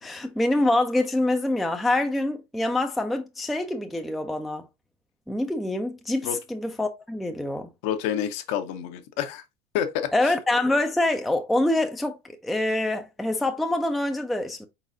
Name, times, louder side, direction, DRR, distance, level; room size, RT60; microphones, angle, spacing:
voice 1, 0.0-4.7 5.3-7.7 10.1-12.2 12.4-14.7, left 1 dB, ahead, 0.4 m, -25 dB
voice 2, 7.8-9.4 9.7-10.1, left 9 dB, 50° left, 0.8 m, -28 dB
4.7 x 4.0 x 2.5 m
figure-of-eight pair, 75°, 30 cm